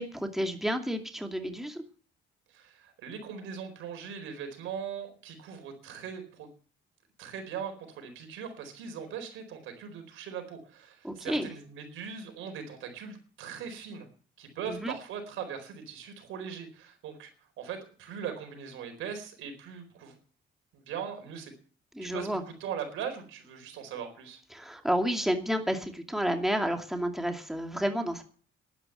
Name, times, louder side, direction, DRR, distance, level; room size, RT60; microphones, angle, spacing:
voice 1, 0.0-1.8 11.0-11.5 14.6-14.9 21.9-22.4 24.5-28.2, equal, ahead, 5 dB, 2.4 m, -30 dB
voice 2, 2.5-6.5 7.2-14.1 14.4-17.3 17.6-20.2 20.7-21.5 22.0-24.4, right 7 dB, 90° right, 5 dB, 4.4 m, -40 dB
11.5 x 11.5 x 7.9 m, 0.42 s
cardioid pair, 90°, 20 cm